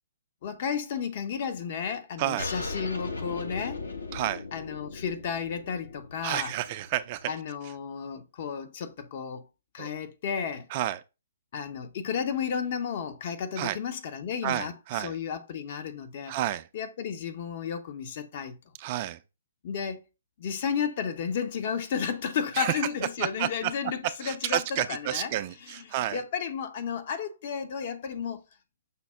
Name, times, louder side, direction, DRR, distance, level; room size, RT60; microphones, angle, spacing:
voice 1, 0.4-3.8 4.5-6.6 7.3-9.5 9.7-10.7 11.5-16.4 16.7-18.6 19.6-20.0 20.4-25.3 25.6-28.4, left 7 dB, 45° left, 0.6 m, -33 dB
voice 2, 2.2-2.5 4.1-4.4 6.2-7.3 9.8-9.9 10.7-11.0 13.6-13.8 14.4-15.1 16.3-16.6 18.8-19.2 22.6-22.7 23.2-23.7 24.2-26.2, right 13 dB, 35° right, 0.3 m, -30 dB
sound 1, 2.4-7.4, left 3 dB, 75° left, 0.8 m, -38 dB
5.7 x 2.0 x 3.5 m
figure-of-eight pair, 125°, 0 cm